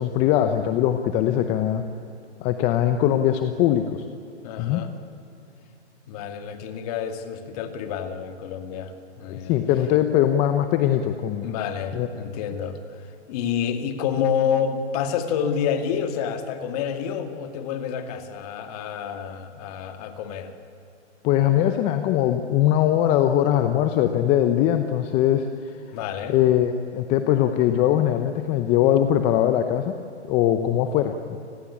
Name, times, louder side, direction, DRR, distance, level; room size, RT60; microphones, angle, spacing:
voice 1, 0.0-1.9 2.4-4.0 4.6-4.8 9.3-11.5 11.9-12.1 21.2-25.7 26.3-29.9 30.3-31.4, left 11 dB, 20° left, 8 dB, 0.8 m, -21 dB
voice 2, 4.4-4.9 6.1-9.5 11.4-20.5 25.9-26.4, left 7 dB, 35° left, 7 dB, 2.3 m, -28 dB
30.0 x 20.5 x 8.5 m, 2.8 s
hypercardioid pair, 150°, 35 cm